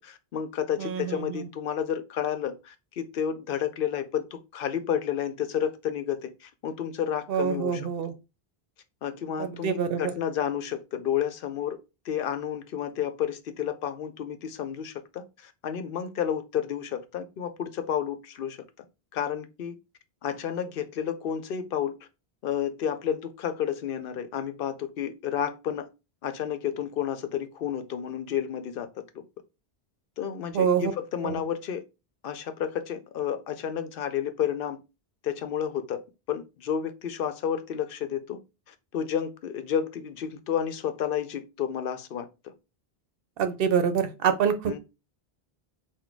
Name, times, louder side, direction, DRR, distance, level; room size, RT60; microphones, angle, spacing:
voice 1, 0.0-7.9 9.0-11.8 12.0-18.9 19.1-19.8 20.2-21.9 22.4-25.9 26.2-29.2 30.2-31.8 32.2-34.8 35.2-38.4 38.7-42.5 44.7-44.8, left 9 dB, 65° left, 0.7 m, -31 dB
voice 2, 0.8-1.4 7.3-8.1 9.4-10.0 30.5-30.9 31.2-31.4 43.4-44.8, right 7 dB, 65° right, 0.8 m, -26 dB
4.1 x 2.2 x 4.5 m
omnidirectional pair, 1.0 m